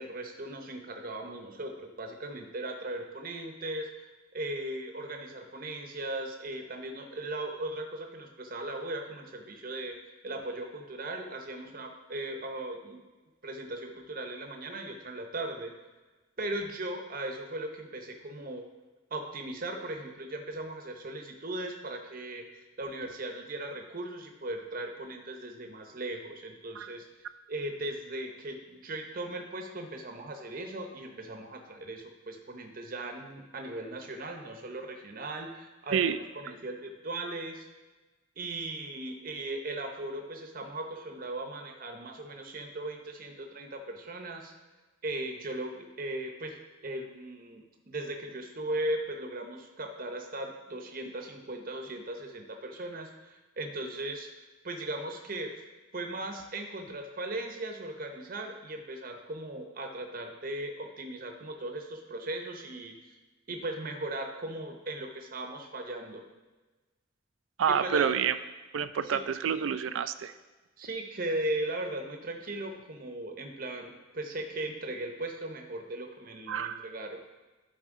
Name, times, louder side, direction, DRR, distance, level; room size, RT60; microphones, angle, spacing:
voice 1, 0.0-10.0 10.2-13.0 13.4-15.7 16.4-18.7 19.1-27.1 27.5-37.7 38.4-44.5 45.0-54.3 54.6-55.6 55.9-62.9 63.5-66.2 67.7-68.1 69.0-69.2 70.8-77.2, right 1 dB, 45° right, 4 dB, 0.8 m, -38 dB
voice 2, 67.6-68.3 68.7-70.3 76.5-76.9, right 7 dB, 75° right, 12 dB, 0.4 m, -28 dB
11.5 x 4.1 x 3.6 m, 1.2 s
head